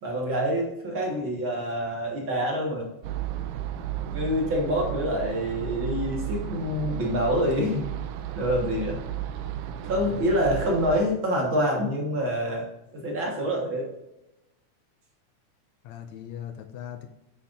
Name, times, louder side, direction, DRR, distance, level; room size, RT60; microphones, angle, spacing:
voice 1, 0.0-2.9 4.1-7.8 8.3-9.0 9.8-12.6 12.9-13.9, equal, 50° right, -1 dB, 1.8 m, -26 dB
sound 1, 3.0-11.0, right 11 dB, 90° right, 2.1 m, -34 dB
voice 2, 9.9-10.3 15.8-17.1, left 10 dB, 80° left, 6 dB, 1.8 m, -40 dB
10.0 x 7.8 x 2.5 m, 0.94 s
omnidirectional pair, 3.5 m